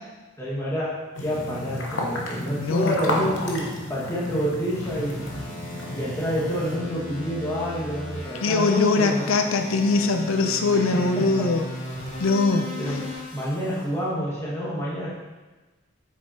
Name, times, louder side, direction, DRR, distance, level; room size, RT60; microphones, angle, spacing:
voice 1, 0.4-5.4 5.7-9.3 10.7-11.5 12.8-15.2, equal, 15° left, -7 dB, 1.7 m, -28 dB
sound 1, 1.1-6.8, left 1 dB, 60° left, 1.1 m, -32 dB
voice 2, 2.6-2.9 8.4-11.7 12.2-12.7, left 3 dB, 80° left, 6 dB, 0.6 m, -22 dB
sound 2, 4.8-13.8, left 2 dB, 30° left, 2.2 m, -37 dB
8.0 x 6.2 x 2.8 m, 1.2 s
head